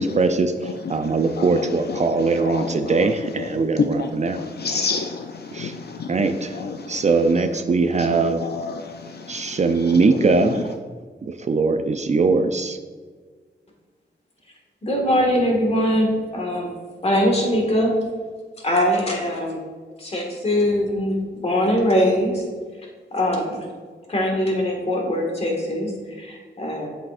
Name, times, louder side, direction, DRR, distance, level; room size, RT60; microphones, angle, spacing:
voice 1, 0.0-0.5 0.9-4.4 5.5-5.7 6.1-8.4 9.3-10.7 11.2-12.8, right 3 dB, 40° right, 0.4 m, -21 dB
voice 2, 0.6-7.6 8.0-10.6, left 5 dB, 60° left, 0.5 m, -31 dB
voice 3, 14.8-16.7 17.0-17.9 18.6-19.6 20.0-21.2 21.4-22.4 23.1-23.6 24.1-26.9, equal, 35° left, 1.8 m, -22 dB
7.7 x 6.5 x 2.5 m
cardioid pair, 80°, 19 cm